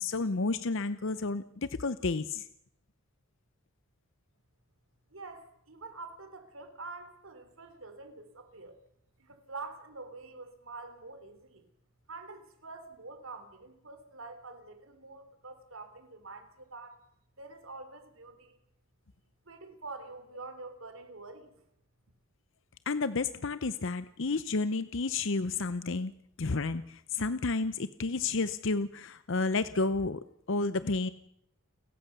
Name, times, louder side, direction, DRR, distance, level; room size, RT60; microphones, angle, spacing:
voice 1, 0.0-2.5 22.9-26.1 26.4-30.2 30.5-31.1, left 3 dB, 60° left, 14 dB, 0.7 m, -31 dB
voice 2, 5.1-8.8 9.2-11.7 12.1-17.0 17.4-18.6 19.5-21.5, right 3 dB, 65° right, 9 dB, 3.5 m, -46 dB
29.5 x 14.5 x 6.8 m, 0.73 s
head